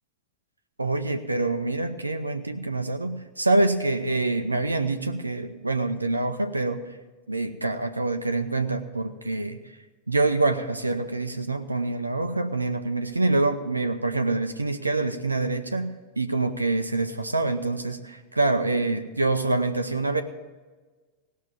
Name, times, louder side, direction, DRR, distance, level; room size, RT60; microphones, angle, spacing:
voice 1, 0.8-6.8 7.3-9.6 10.1-20.2, right 2 dB, 80° right, 8 dB, 0.6 m, -26 dB
17.0 x 6.6 x 7.2 m, 1.3 s
figure-of-eight pair, 90°, 0 cm